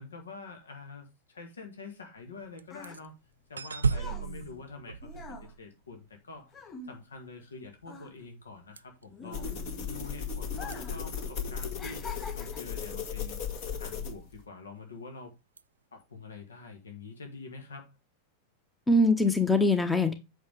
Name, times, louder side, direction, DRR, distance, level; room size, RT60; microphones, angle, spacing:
voice 1, 0.0-3.1 3.5-6.5 6.8-9.5 9.9-13.4 13.7-15.3 15.9-18.0, left 4 dB, 70° left, 1.7 m, -46 dB
sound 1, 2.2-7.5 7.8-10.0 10.5-11.1 11.3-12.8 13.5-13.7, left 3 dB, 25° left, 3.8 m, -46 dB
sound 2, 2.6-3.1 3.6-6.0 8.8-9.0 10.0-10.2 10.6-10.8 15.6-15.7, right 5 dB, 75° right, 0.3 m, -33 dB
voice 2, 4.1-4.6 9.2-9.8 18.9-20.1, left 2 dB, 10° left, 1.0 m, -25 dB
sound 3, 9.3-14.4, left 6 dB, 45° left, 1.8 m, -36 dB
8.4 x 5.9 x 3.5 m
figure-of-eight pair, 90°, 0 cm